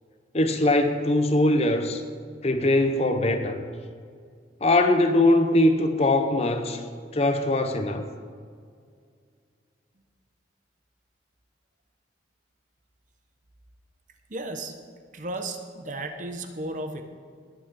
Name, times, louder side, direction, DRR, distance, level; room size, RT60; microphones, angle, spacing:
voice 1, 0.3-2.0 2.4-3.6 4.6-6.8 7.1-8.0, left 1 dB, 35° left, 7 dB, 0.7 m, -21 dB
voice 2, 14.3-14.7 15.1-17.0, right 2 dB, 40° right, 6 dB, 0.9 m, -34 dB
19.5 x 9.1 x 3.8 m, 2.1 s
head